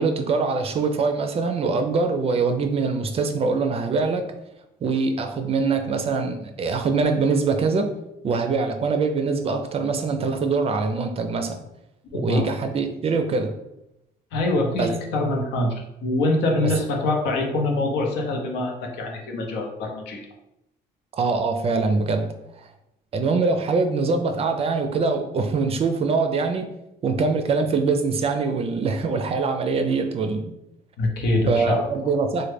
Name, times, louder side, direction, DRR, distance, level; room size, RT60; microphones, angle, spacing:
voice 1, 0.0-4.3 4.8-7.9 8.2-11.6 12.1-13.6 14.8-14.9 16.6-16.7 21.1-22.7 23.1-26.7 27.0-30.5 31.5-32.5, right 4 dB, 35° right, 6 dB, 0.4 m, -23 dB
voice 2, 12.1-12.4 14.3-20.3 31.0-31.9, left 2 dB, 85° left, 1 dB, 0.7 m, -24 dB
3.1 x 2.2 x 3.3 m, 0.87 s
cardioid pair, 110°, 17 cm